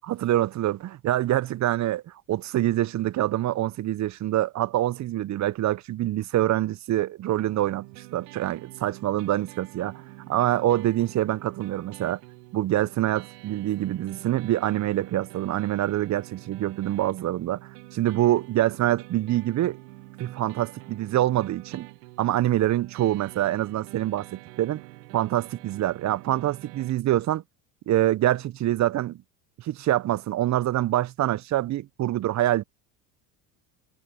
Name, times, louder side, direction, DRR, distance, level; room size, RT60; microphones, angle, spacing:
voice 1, 0.1-2.0 2.3-7.9 8.1-10.0 10.3-12.2 12.5-19.8 20.2-21.9 22.2-24.8 25.1-27.4 27.9-29.2 29.6-32.6, right 14 dB, 35° right, 0.6 m, -25 dB
sound 1, 7.4-26.9, right 22 dB, 80° right, 1.6 m, -47 dB
hypercardioid pair, 75°, 47 cm